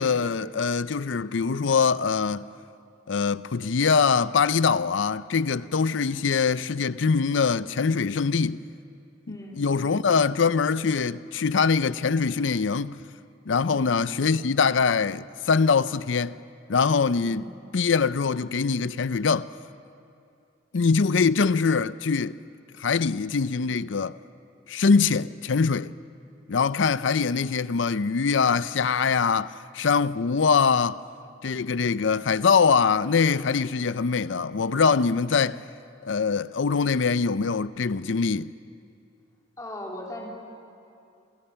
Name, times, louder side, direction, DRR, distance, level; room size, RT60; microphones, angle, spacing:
voice 1, 0.0-2.5 3.1-8.6 9.3-13.0 13.5-16.3 16.7-17.5 17.7-19.5 20.7-22.4 22.8-24.2 24.7-25.9 26.5-31.0 31.4-35.6 36.1-38.5, left 5 dB, 70° left, 0.5 m, -23 dB
voice 2, 9.3-9.6 17.2-17.5 39.6-40.3, left 1 dB, 20° left, 3.6 m, -39 dB
28.5 x 27.5 x 5.7 m
head